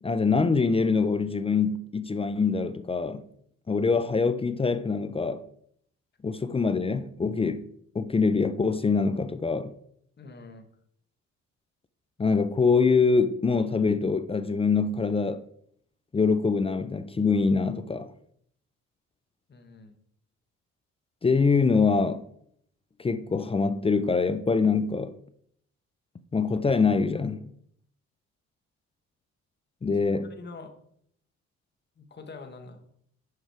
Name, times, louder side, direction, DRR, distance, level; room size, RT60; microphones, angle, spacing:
voice 1, 0.0-3.2 3.7-5.4 6.2-7.7 7.9-9.7 12.2-15.4 16.1-18.1 21.2-22.3 23.0-25.2 26.3-27.5 29.8-30.3, left 4 dB, 20° left, 0.4 m, -24 dB
voice 2, 10.2-10.7 19.5-19.9 29.8-30.7 32.0-32.9, left 3 dB, 35° left, 1.2 m, -45 dB
6.4 x 4.8 x 4.6 m
cardioid pair, 90°, 30 cm